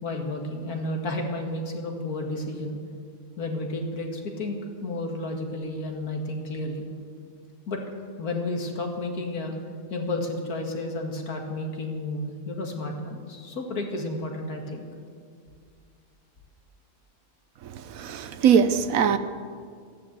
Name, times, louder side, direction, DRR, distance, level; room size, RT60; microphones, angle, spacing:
voice 1, 0.0-2.8 3.4-6.8 7.7-7.8 8.2-9.6 9.9-14.9, left 2 dB, 75° left, 2.4 m, -31 dB
voice 2, 17.6-19.2, right 7 dB, 70° right, 1.1 m, -22 dB
14.5 x 11.0 x 8.1 m
omnidirectional pair, 1.6 m